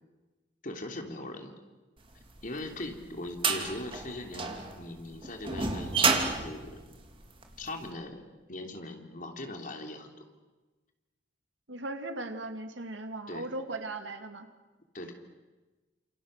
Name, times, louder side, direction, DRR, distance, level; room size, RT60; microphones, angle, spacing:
voice 1, 0.6-1.5 2.4-6.8 7.6-8.2 8.5-10.1 13.3-13.5 14.9-15.1, left 1 dB, 45° left, 4 dB, 3.5 m, -40 dB
sound 1, 2.4-7.7, right 4 dB, 30° right, 2.8 m, -30 dB
voice 2, 11.7-14.5, right 2 dB, 90° right, 7 dB, 2.6 m, -38 dB
29.5 x 28.0 x 6.8 m, 1.2 s
head